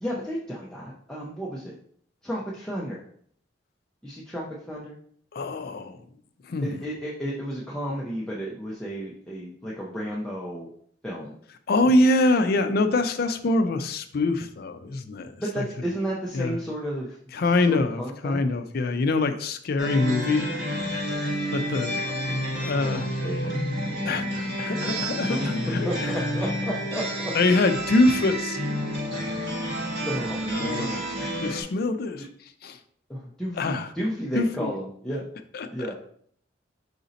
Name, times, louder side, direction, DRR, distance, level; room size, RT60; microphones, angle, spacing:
voice 1, 0.0-1.7 2.2-3.0 4.0-5.0 6.6-10.7 11.0-11.4 15.4-18.4 21.6-22.4 22.7-25.5 25.8-27.3 30.0-31.1 33.1-35.3 35.7-36.0, equal, 5° left, -6 dB, 0.5 m, -33 dB
voice 2, 5.3-6.0 6.4-6.8 11.7-15.6 16.3-16.6 17.3-20.5 21.5-22.0 22.5-23.0 24.0-26.2 27.3-28.6 30.5-31.0 31.4-32.2 32.6-32.8 33.6-33.9 34.3-34.7 35.5-35.9, left 2 dB, 55° left, 9 dB, 0.4 m, -24 dB
sound 1, 19.8-31.6, equal, 65° right, 1.4 m, -29 dB
4.9 x 2.7 x 3.9 m, 0.62 s
head